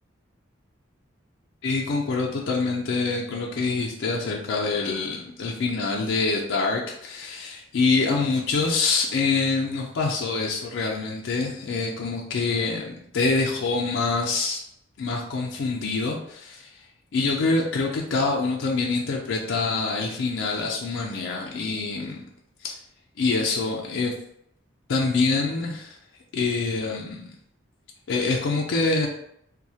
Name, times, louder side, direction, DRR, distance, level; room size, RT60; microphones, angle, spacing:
voice 1, 1.6-14.6 15.0-16.7 17.1-22.2 22.6-22.7 23.2-24.1 24.9-26.0 26.3-27.3 28.1-29.1, left 3 dB, 65° left, -2 dB, 0.4 m, -25 dB
2.2 x 2.0 x 2.7 m, 0.72 s
head